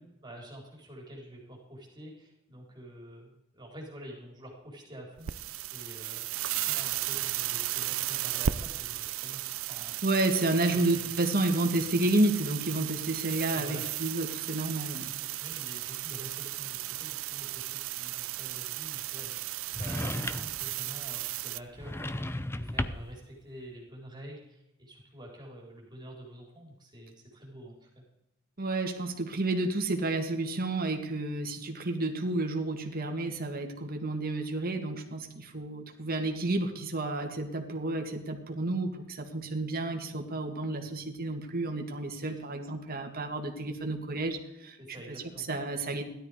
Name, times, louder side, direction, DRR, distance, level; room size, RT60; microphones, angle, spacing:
voice 1, 0.2-6.3 6.5-10.0 10.4-11.2 13.5-13.8 15.3-22.1 22.5-28.0 42.2-42.4 44.8-45.5, right 1 dB, 20° right, 0 dB, 4.1 m, -47 dB
sound 1, 5.2-21.6, right 13 dB, 70° right, 0.5 m, -35 dB
voice 2, 10.0-15.1 28.6-44.8 45.4-46.0, right 2 dB, 45° right, 4 dB, 2.2 m, -30 dB
sound 2, 19.7-20.7 21.8-23.2, left 1 dB, 10° left, 0.6 m, -34 dB
16.5 x 12.5 x 5.0 m, 0.88 s
head